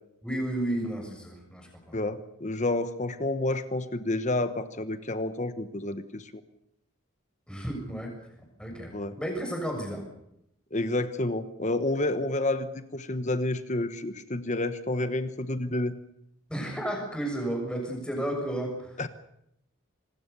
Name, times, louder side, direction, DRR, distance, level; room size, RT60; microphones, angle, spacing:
voice 1, 0.2-2.0 7.5-10.0 16.5-19.0, right 1 dB, 5° left, 2 dB, 6.4 m, -33 dB
voice 2, 1.9-6.3 8.9-9.1 10.7-15.9 19.0-19.1, left 2 dB, 35° left, 11 dB, 1.2 m, -29 dB
26.0 x 20.5 x 6.9 m, 0.79 s
head